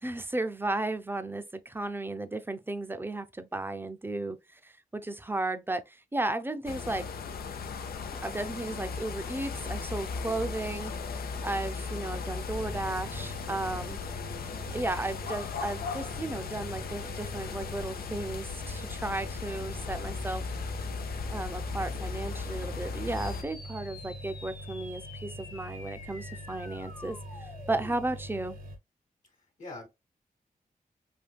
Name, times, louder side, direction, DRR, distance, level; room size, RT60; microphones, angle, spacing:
voice 1, 0.0-7.1 8.2-10.9 11.4-14.0 14.7-20.4 21.3-28.6, right 2 dB, 15° right, 0.5 m, -34 dB
sound 1, 6.7-23.4, left 5 dB, 85° left, 0.5 m, -37 dB
sound 2, 12.6-28.8, equal, 70° right, 1.0 m, -43 dB
sound 3, 23.1-28.2, left 3 dB, 25° left, 0.6 m, -48 dB
voice 2, 29.2-29.9, left 2 dB, 60° left, 1.2 m, -44 dB
3.5 x 2.7 x 2.2 m
cardioid pair, 60°, 15 cm